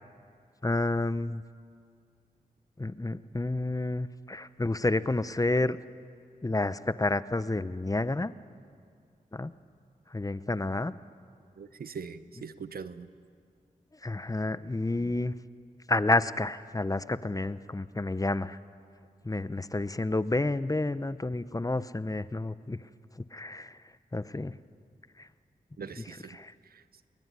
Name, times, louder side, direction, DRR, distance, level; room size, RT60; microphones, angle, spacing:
voice 1, 0.6-1.4 2.8-5.8 6.4-8.3 9.3-9.5 10.1-10.9 14.0-15.4 15.9-18.6 19.2-22.8 23.3-23.8 24.1-24.5 25.2-25.3 26.0-26.1 26.3-26.5, left 2 dB, 20° left, 15 dB, 0.8 m, -30 dB
voice 2, 11.6-13.1 25.8-26.4 26.7-26.8, right 6 dB, 80° right, 13 dB, 0.9 m, -42 dB
21.5 x 21.0 x 9.7 m, 2.3 s
cardioid pair, 45°, 15 cm